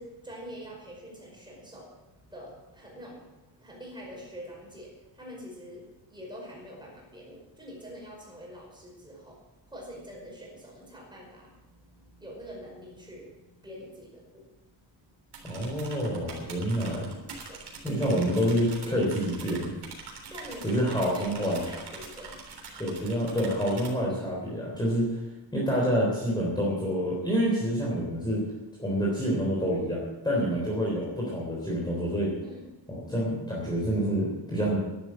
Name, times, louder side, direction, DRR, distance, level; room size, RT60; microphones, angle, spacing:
voice 1, 0.0-1.9 2.3-9.4 9.7-13.4 13.6-14.4 16.4-16.6 17.5-17.6 20.3-20.8 21.1-22.4 24.1-24.3 30.4-30.5 32.4-32.8, equal, 10° right, -2 dB, 5.3 m, -45 dB
sound 1, 15.3-23.9, right 4 dB, 60° right, 3.7 m, -44 dB
voice 2, 15.4-17.1 17.8-19.7 20.6-21.6 22.8-25.2 25.5-28.4 28.8-32.3 32.9-34.8, equal, 10° left, -4 dB, 3.5 m, -27 dB
11.5 x 11.0 x 7.6 m, 1.0 s
wide cardioid pair, 165°, 44 cm